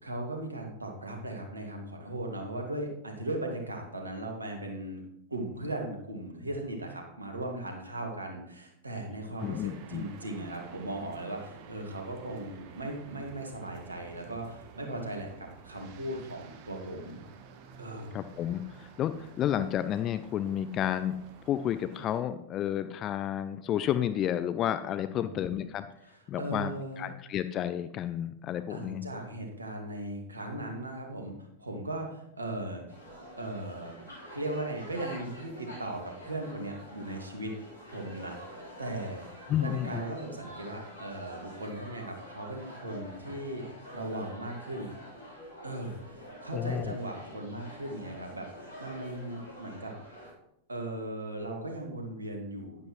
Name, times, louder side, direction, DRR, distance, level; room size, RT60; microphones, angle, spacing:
voice 1, 0.0-5.0 5.3-17.2 17.8-18.2 25.1-25.7 26.1-27.1 28.7-32.8 33.4-33.9 34.3-37.5 37.9-44.9 45.6-49.9 50.7-52.9, right 1 dB, 80° right, 2 dB, 2.1 m, -38 dB
voice 2, 9.4-10.0 18.1-21.2 21.5-25.9 26.3-29.0 39.5-40.0 46.5-47.0, left 10 dB, 30° left, 12 dB, 0.5 m, -31 dB
sound 1, 9.4-22.2, right 6 dB, 45° right, 1.2 m, -51 dB
sound 2, 32.9-50.3, equal, 80° left, 3.8 m, -47 dB
11.0 x 10.5 x 3.2 m, 0.78 s
figure-of-eight pair, 90°, 0 cm